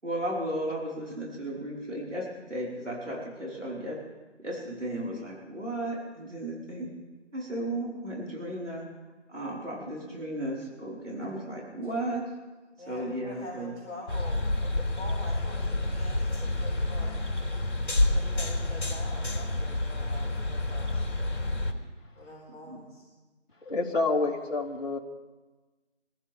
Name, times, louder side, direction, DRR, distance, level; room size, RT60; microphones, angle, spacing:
voice 1, 0.0-4.0 4.4-6.9 7.3-8.9 9.3-12.3 12.9-13.7 22.7-22.8, right 1 dB, 75° right, -4 dB, 5.2 m, -34 dB
voice 2, 12.7-21.1 22.1-23.1, left 1 dB, 5° left, -17 dB, 4.6 m, -45 dB
sound 1, 14.1-21.7, left 1 dB, 60° left, 3.9 m, -29 dB
voice 3, 23.6-25.0, left 3 dB, 45° left, -6 dB, 3.4 m, -28 dB
25.5 x 15.0 x 3.7 m, 1.2 s
figure-of-eight pair, 170°, 36 cm